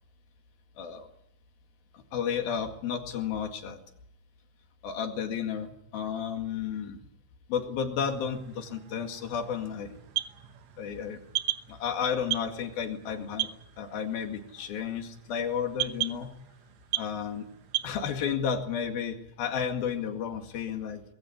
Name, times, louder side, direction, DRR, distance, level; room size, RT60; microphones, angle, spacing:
voice 1, 0.8-1.1 1.9-3.8 4.8-7.0 7.5-10.0 10.8-11.2 11.7-13.5 13.8-16.3 17.0-17.5 17.8-21.0, left 7 dB, 90° left, 5 dB, 4.0 m, -32 dB
sound 1, 8.0-17.9, right 16 dB, 65° right, 1.9 m, -37 dB
21.0 x 16.0 x 9.7 m, 0.80 s
omnidirectional pair, 4.1 m